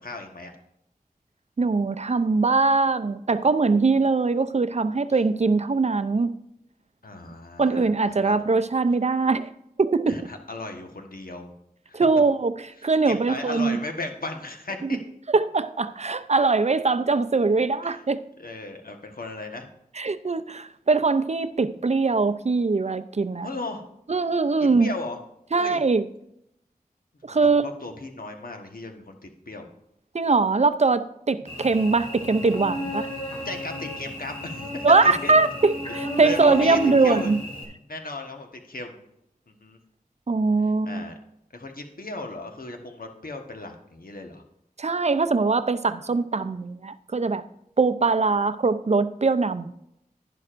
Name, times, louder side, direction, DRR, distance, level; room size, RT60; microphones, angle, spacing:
voice 1, 0.0-0.5 7.0-7.9 8.2-8.4 10.1-11.5 11.9-12.1 12.8-15.0 17.8-18.0 18.4-19.7 23.4-23.8 24.6-25.2 25.5-25.8 27.3-29.2 29.5-29.7 31.3-31.5 33.4-35.3 36.2-37.3 37.9-39.0 39.5-39.8 40.6-41.2 41.5-44.4, left 2 dB, 75° left, 4 dB, 1.2 m, -36 dB
voice 2, 1.6-6.3 7.6-9.5 9.8-10.1 11.9-12.5 12.8-13.8 14.8-14.9 15.3-18.2 20.0-23.5 24.1-24.9 25.5-26.0 27.2-27.7 30.1-33.1 34.8-37.4 40.3-41.0 44.8-47.4 47.8-49.7, right 4 dB, 45° right, 13 dB, 0.5 m, -22 dB
Cricket / Buzz, 31.5-37.6, left 1 dB, 40° left, 2.8 m, -32 dB
11.0 x 10.5 x 2.5 m, 0.77 s
wide cardioid pair, 65°, 15 cm